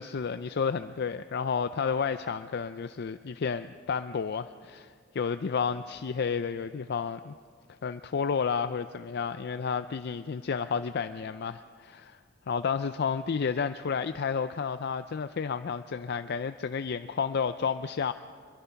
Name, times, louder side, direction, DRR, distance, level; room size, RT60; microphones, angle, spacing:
voice 1, 0.0-7.3 7.8-12.2 12.5-18.1, left 6 dB, 55° left, 11 dB, 0.4 m, -31 dB
23.5 x 22.5 x 5.8 m, 2.1 s
head